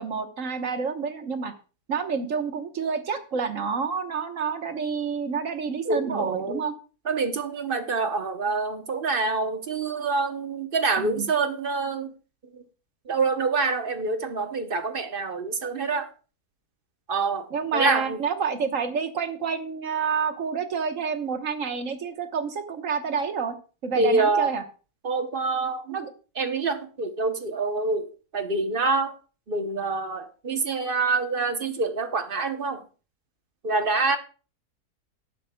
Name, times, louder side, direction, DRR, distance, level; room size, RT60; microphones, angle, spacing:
voice 1, 0.0-1.5 1.9-6.7 11.0-11.3 17.5-23.5 23.8-24.6 25.9-26.1, right 6 dB, 60° right, 1.5 m, -29 dB
voice 2, 5.9-6.6 7.0-12.1 12.5-12.6 13.1-16.1 17.1-18.2 24.0-24.5 25.0-26.0 26.4-29.1 29.5-32.8 33.6-34.2, right 3 dB, 40° right, 1.0 m, -26 dB
18.5 x 9.1 x 2.3 m
omnidirectional pair, 1.6 m